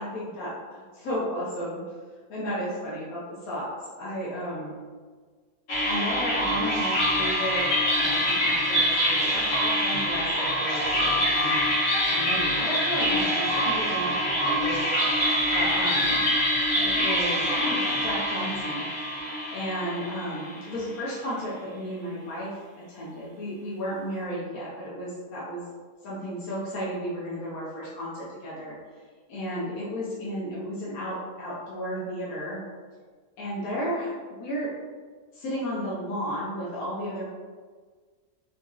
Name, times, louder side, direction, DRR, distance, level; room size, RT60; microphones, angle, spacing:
voice 1, 0.0-1.8 2.3-3.7 4.0-4.7 5.8-11.6 12.0-14.8 15.5-16.2 16.8-18.9 19.5-22.5 22.9-25.7 26.0-28.8 29.3-32.6 33.4-34.1 34.4-34.7 35.3-37.3, equal, 70° left, -7 dB, 1.2 m, -33 dB
sound 1, 5.7-20.9, equal, 50° left, 0.9 m, -25 dB
3.9 x 2.8 x 2.4 m, 1.5 s
omnidirectional pair, 1.7 m